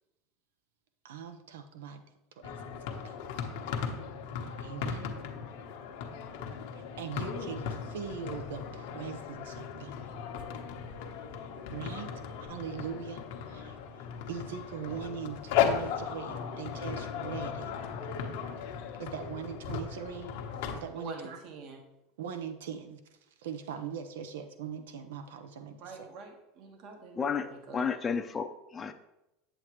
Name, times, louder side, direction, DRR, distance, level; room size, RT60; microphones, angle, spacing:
voice 1, 1.0-2.0 2.3-2.7 3.0-3.3 4.6-5.2 6.7-10.1 11.7-12.1 12.4-17.8 19.0-20.3 20.7-21.4 22.2-23.0 23.4-26.1, right 7 dB, 90° right, 8 dB, 0.8 m, -41 dB
sound 1, 2.4-20.8, left 7 dB, 75° left, 1.0 m, -36 dB
voice 2, 20.9-21.8 25.8-27.8, right 3 dB, 55° right, 3 dB, 1.3 m, -46 dB
voice 3, 27.1-27.5 27.7-28.9, left 6 dB, 25° left, 6 dB, 0.6 m, -32 dB
8.0 x 8.0 x 3.0 m, 0.92 s
supercardioid pair, 120°, 0 cm